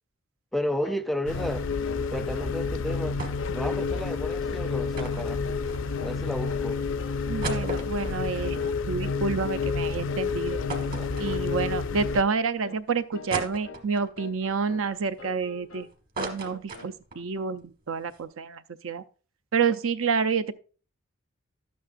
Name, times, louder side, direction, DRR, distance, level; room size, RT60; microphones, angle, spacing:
voice 1, 0.5-1.7 2.1-3.2 3.5-5.4 6.0-6.8 11.0-11.1, left 1 dB, ahead, 0.4 m, -32 dB
sound 1, 0.8-1.1 1.3-1.6 1.8-3.1 3.4-3.6 3.9-4.1 4.4-4.7 4.9-5.7 5.9-6.7 7.0-7.2 7.5-7.7 8.0-8.2 8.5-8.7 9.0-9.3 9.5-9.8 10.1-10.3 10.6-10.8 11.1-11.3 11.6-11.9 12.1-12.3 12.6-12.8 13.1-13.9 14.2-14.9 15.2-15.9 16.2-16.9, left 4 dB, 85° left, 0.8 m, -45 dB
sound 2, 1.3-12.2, left 4 dB, 65° left, 0.5 m, -29 dB
sound 3, 3.2-3.6 3.9-4.0 4.9-6.2 6.7-6.8 7.2-9.6 10.0-10.1 10.7-11.8 12.3-12.4 13.3-14.1 14.7-15.7 15.9-17.3 17.6-17.7 18.0-18.2, right 2 dB, 45° right, 1.5 m, -37 dB
voice 2, 7.3-10.6 11.2-15.9 16.2-19.0 19.5-20.5, right 5 dB, 80° right, 0.6 m, -28 dB
12.0 x 8.6 x 2.5 m
head